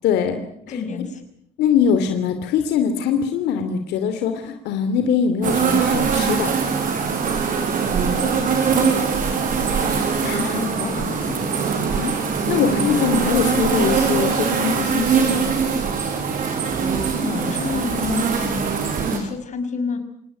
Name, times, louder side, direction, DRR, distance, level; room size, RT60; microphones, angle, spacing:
voice 1, 0.0-0.4 1.6-6.5 10.2-10.6 12.0-15.5, left 7 dB, 80° left, 7 dB, 2.8 m, -22 dB
voice 2, 0.7-1.2 8.1-10.1 10.4-11.6 17.2-18.7 19.1-20.0, left 4 dB, 45° left, 8 dB, 5.9 m, -30 dB
sound 1, 5.4-19.2, right 6 dB, 55° right, 6.2 m, -22 dB
27.0 x 19.0 x 9.1 m, 0.71 s
cardioid pair, 110°, 17 cm